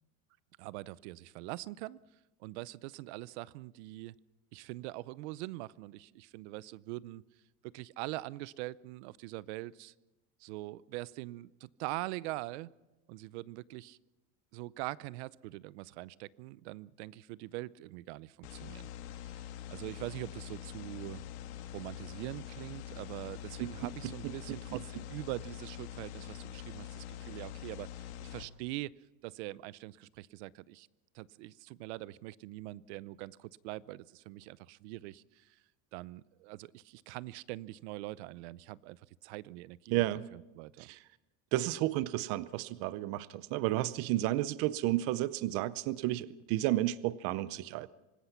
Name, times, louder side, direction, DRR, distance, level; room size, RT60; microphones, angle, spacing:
voice 1, 0.6-2.0 2.4-4.1 4.5-7.2 7.7-9.9 10.4-12.7 13.1-14.0 14.5-18.9 19.2-21.2 21.7-28.9 29.2-30.9 31.1-35.6 35.9-40.0 40.3-40.9, right 18 dB, 90° right, 20 dB, 0.7 m, -43 dB
sound 1, 18.4-28.4, left 11 dB, 80° left, 2.2 m, -45 dB
voice 2, 24.2-24.8 39.9-40.2 40.9-41.0 41.5-47.9, right 15 dB, 45° right, 17 dB, 0.6 m, -32 dB
25.0 x 19.5 x 5.8 m, 1.1 s
cardioid pair, 180°, 33 cm